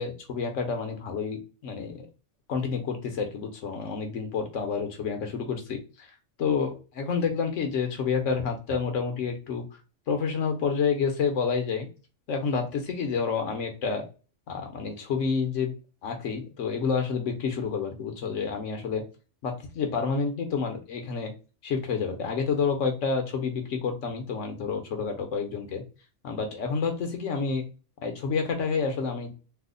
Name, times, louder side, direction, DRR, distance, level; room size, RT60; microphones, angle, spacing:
voice 1, 0.0-2.1 2.5-5.8 6.4-9.6 10.1-11.9 12.3-14.0 14.5-15.7 16.0-19.0 19.4-21.3 21.6-25.8 26.2-27.6 28.0-29.3, left 5 dB, 85° left, 4 dB, 1.2 m, -29 dB
3.1 x 2.1 x 3.7 m, 0.33 s
omnidirectional pair, 1.2 m